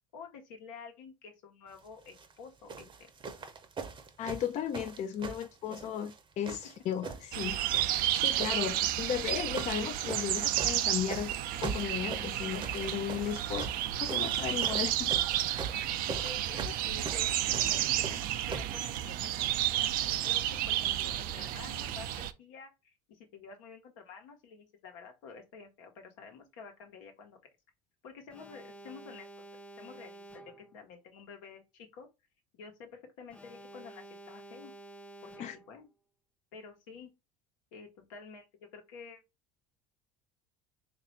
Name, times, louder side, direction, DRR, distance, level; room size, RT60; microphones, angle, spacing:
voice 1, 0.1-3.1 6.5-6.6 13.3-13.4 16.2-22.7 23.1-27.4 28.0-29.3 29.8-32.1 32.5-34.7 35.2-35.9 36.5-37.1 37.7-38.5 38.7-39.2, left 5 dB, 75° left, 1.1 m, -50 dB
sound 1, 2.0-2.3 2.7-6.2 6.4-7.4 7.7-8.6 9.2-9.8 10.1-18.8 19.6-19.7, right 4 dB, 30° right, 0.8 m, -41 dB
voice 2, 4.2-7.6 7.9-11.3 11.6-13.7 14.0-15.1 35.4-35.6, left 9 dB, 45° left, 0.5 m, -35 dB
sound 2, 7.3-22.3, right 13 dB, 60° right, 0.4 m, -31 dB
Alarm, 28.3-30.8 33.3-35.8, right 2 dB, 5° left, 0.7 m, -50 dB
3.2 x 2.6 x 4.1 m
hypercardioid pair, 85°, 17 cm